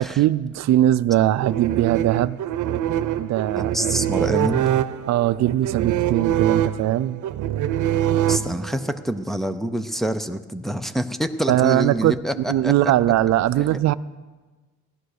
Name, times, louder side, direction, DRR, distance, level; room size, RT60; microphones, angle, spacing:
voice 1, 0.0-2.4 3.2-4.1 5.1-7.2 11.5-13.9, right 13 dB, 65° right, 14 dB, 0.4 m, -21 dB
sound 1, 1.4-8.9, right 11 dB, 90° right, 0.7 m, -24 dB
voice 2, 3.5-4.6 8.3-12.7 13.6-13.9, right 1 dB, ahead, 7 dB, 0.5 m, -26 dB
15.5 x 11.5 x 6.5 m, 1.3 s
wide cardioid pair, 170°, 30 cm